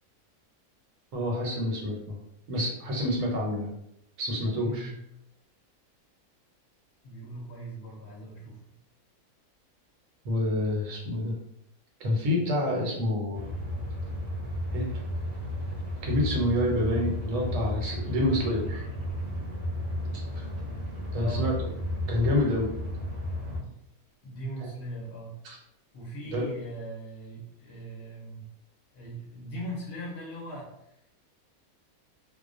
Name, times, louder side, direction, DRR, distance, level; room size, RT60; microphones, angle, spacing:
voice 1, 1.1-2.2 2.5-3.7 4.2-4.9 10.2-11.3 12.0-13.4 14.7-14.9 16.0-18.8 20.1-20.4 21.1-21.5 22.1-22.7 25.4-25.6 26.3-26.4, left 1 dB, 70° right, -1 dB, 1.0 m, -28 dB
voice 2, 4.6-5.0 7.0-8.7 21.1-21.5 23.6-23.7 24.2-25.3 25.9-28.5 28.9-30.7, right 1 dB, 65° left, -4 dB, 0.7 m, -39 dB
sound 1, 13.3-23.6, left 1 dB, 15° left, 0.3 m, -33 dB
2.3 x 2.1 x 2.4 m, 0.79 s
omnidirectional pair, 1.5 m